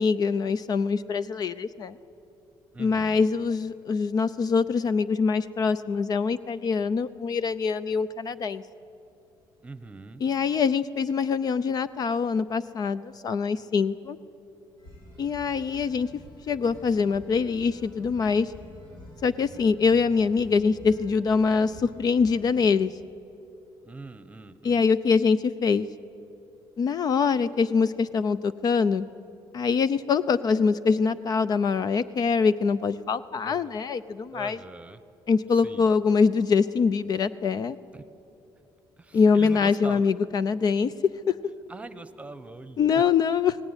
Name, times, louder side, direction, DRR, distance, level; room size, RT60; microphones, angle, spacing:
voice 1, 0.0-2.0 2.8-8.6 10.2-14.2 15.2-16.1 16.5-18.5 19.2-22.9 24.6-25.9 26.8-29.0 29.5-34.6 35.3-37.8 39.1-40.9 41.3-41.4 42.8-43.6, left 5 dB, 45° left, 15 dB, 0.5 m, -24 dB
voice 2, 2.7-3.2 9.6-10.2 23.8-24.8 33.4-33.8 34.3-35.0 35.5-35.9 37.9-38.0 39.0-40.0 41.7-43.0, right 3 dB, 15° right, 12 dB, 1.1 m, -42 dB
sound 1, 14.8-22.6, left 1 dB, 75° left, 7.2 m, -48 dB
20.5 x 18.0 x 9.8 m, 2.8 s
cardioid pair, 115°, 9 cm